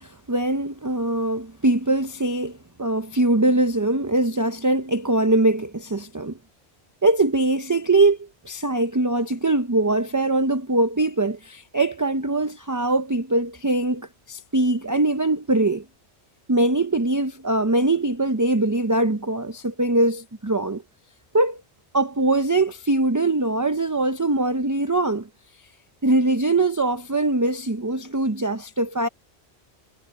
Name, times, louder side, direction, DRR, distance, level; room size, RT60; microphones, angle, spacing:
voice 1, 0.0-6.4 7.0-15.8 16.5-20.8 21.3-21.6 21.9-25.3 26.0-29.1, right 2 dB, 20° right, 0.7 m, -22 dB
omnidirectional pair, 1.1 m